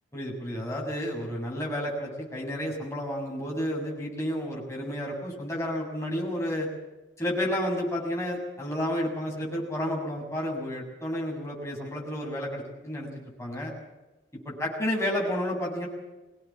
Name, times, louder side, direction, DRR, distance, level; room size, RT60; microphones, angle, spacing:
voice 1, 0.1-6.7 7.2-13.1 13.4-13.7 14.5-15.9, equal, 15° left, -2 dB, 7.1 m, -31 dB
23.5 x 18.0 x 7.5 m, 1.1 s
head